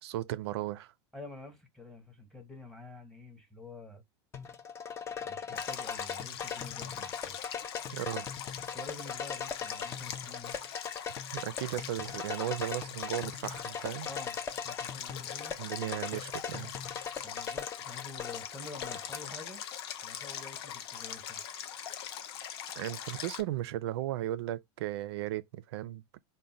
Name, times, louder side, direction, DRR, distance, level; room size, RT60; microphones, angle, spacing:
voice 1, 0.0-0.9 7.9-8.3 11.3-14.1 15.6-16.7 22.8-26.2, right 13 dB, 75° right, 0.5 m, -36 dB
voice 2, 1.1-4.0 5.2-7.4 8.6-10.6 14.0-15.6 17.2-19.6 20.0-21.4, left 3 dB, ahead, 0.9 m, -48 dB
sound 1, 4.3-19.2, left 7 dB, 20° left, 0.4 m, -40 dB
Stream, 5.6-23.4, left 9 dB, 70° left, 0.6 m, -42 dB
3.7 x 2.2 x 4.1 m
supercardioid pair, 140°, 14 cm